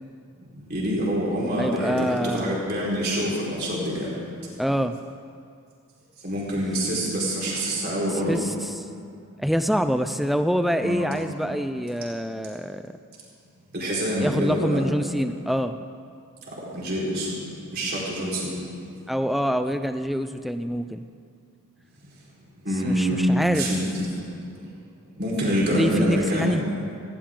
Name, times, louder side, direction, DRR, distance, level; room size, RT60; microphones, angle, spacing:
voice 1, 0.5-4.1 6.2-8.4 10.8-11.2 13.7-14.8 16.5-17.3 17.6-18.9 22.6-24.6 25.1-26.5, equal, 45° right, -6 dB, 4.3 m, -26 dB
voice 2, 1.6-2.6 4.6-5.0 8.3-8.7 9.4-12.8 14.2-15.8 19.1-21.0 22.8-23.7 25.7-26.6, equal, ahead, 9 dB, 0.4 m, -25 dB
19.0 x 16.5 x 3.8 m, 2.3 s
head